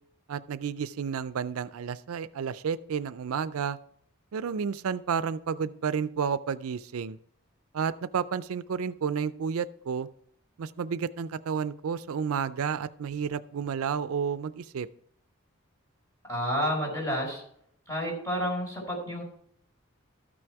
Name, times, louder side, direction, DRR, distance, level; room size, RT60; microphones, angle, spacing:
voice 1, 0.3-3.8 4.3-7.2 7.7-10.1 10.6-14.9, right 6 dB, 85° right, 15 dB, 0.4 m, -31 dB
voice 2, 16.3-17.4 17.9-19.2, equal, 15° left, -2 dB, 4.3 m, -30 dB
13.5 x 6.2 x 4.6 m, 0.65 s
head